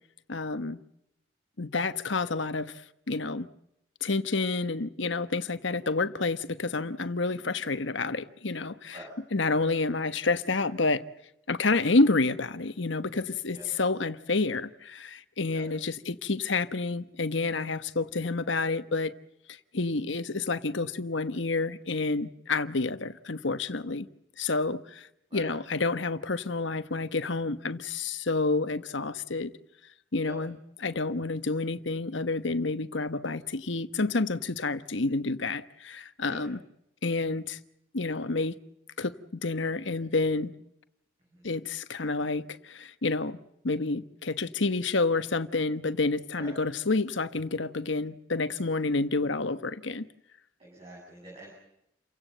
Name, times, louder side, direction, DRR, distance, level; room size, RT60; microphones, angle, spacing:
voice 1, 0.3-0.8 1.6-2.8 3.1-3.5 4.0-9.0 9.3-11.0 11.5-19.1 19.5-24.1 24.4-29.5 30.1-36.6 37.0-37.6 37.9-38.6 39.0-40.5 41.4-43.4 43.6-50.1, left 3 dB, 70° left, 1.2 m, -29 dB
voice 2, 50.6-51.5, right 1 dB, 30° right, 7.6 m, -46 dB
29.5 x 16.5 x 7.9 m
head